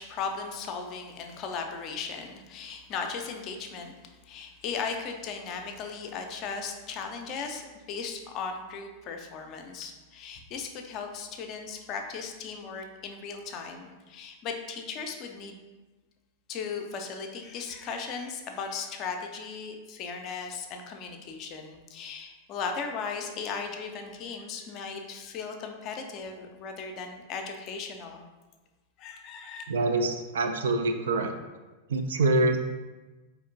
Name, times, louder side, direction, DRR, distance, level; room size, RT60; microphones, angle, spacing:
voice 1, 0.0-4.0 4.3-15.6 16.5-28.2 29.0-29.6, left 5 dB, 35° left, 4 dB, 0.4 m, -37 dB
voice 2, 29.7-31.3 31.9-32.6, right 2 dB, 65° right, 5 dB, 0.3 m, -25 dB
4.2 x 2.9 x 2.5 m, 1.2 s
figure-of-eight pair, 90°, 0 cm